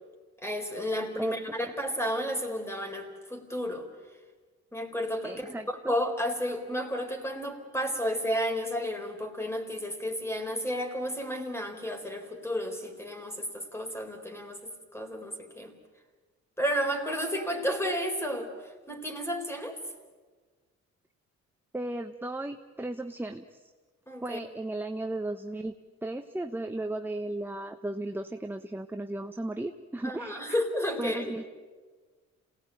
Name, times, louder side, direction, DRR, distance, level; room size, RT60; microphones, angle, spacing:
voice 1, 0.4-3.9 4.7-15.7 16.6-18.5 18.9-19.8 24.1-24.4 30.0-31.3, equal, 10° left, 5 dB, 4.3 m, -32 dB
voice 2, 5.2-5.9 21.7-23.6 24.2-25.8 26.0-30.6 31.0-31.4, right 2 dB, 5° right, 7 dB, 1.0 m, -35 dB
27.5 x 18.5 x 9.2 m, 1.4 s
cardioid pair, 90°, 30 cm